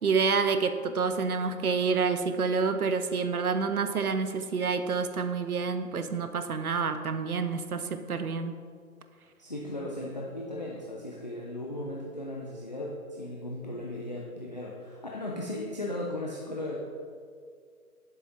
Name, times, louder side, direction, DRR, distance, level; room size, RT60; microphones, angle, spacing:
voice 1, 0.0-8.5, right 5 dB, 75° right, 9 dB, 0.7 m, -28 dB
voice 2, 9.4-16.8, left 1 dB, 30° left, -2 dB, 0.4 m, -36 dB
7.0 x 6.4 x 3.8 m, 2.1 s
figure-of-eight pair, 140°, 44 cm